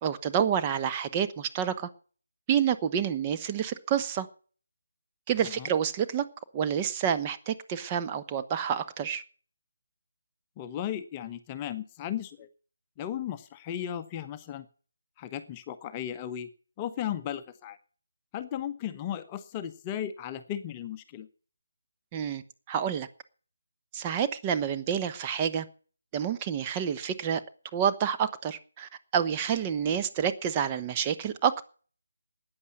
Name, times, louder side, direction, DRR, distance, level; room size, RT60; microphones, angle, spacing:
voice 1, 0.0-1.9 2.5-4.3 5.3-6.2 6.5-9.2 22.1-22.4 22.7-23.1 23.9-25.6 26.1-27.4 27.7-31.6, right 8 dB, 20° right, 1.0 m, -28 dB
voice 2, 10.6-12.5 13.0-14.7 15.2-16.5 16.8-17.8 18.3-21.3, left 10 dB, 20° left, 1.0 m, -35 dB
14.0 x 9.8 x 8.0 m
figure-of-eight pair, 155°, 0 cm